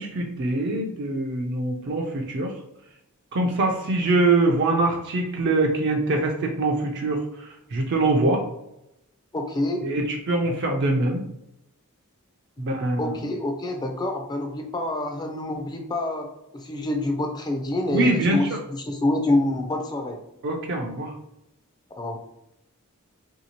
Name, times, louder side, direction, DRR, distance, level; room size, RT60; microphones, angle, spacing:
voice 1, 0.0-2.5 3.3-8.4 9.8-11.2 12.6-13.1 17.9-18.6 20.4-21.1, right 2 dB, 55° right, 1 dB, 0.4 m, -23 dB
voice 2, 9.3-9.8 12.6-16.3 16.5-20.2 22.0-22.2, left 1 dB, 20° left, 3 dB, 0.4 m, -27 dB
3.3 x 2.7 x 2.9 m, 0.83 s
head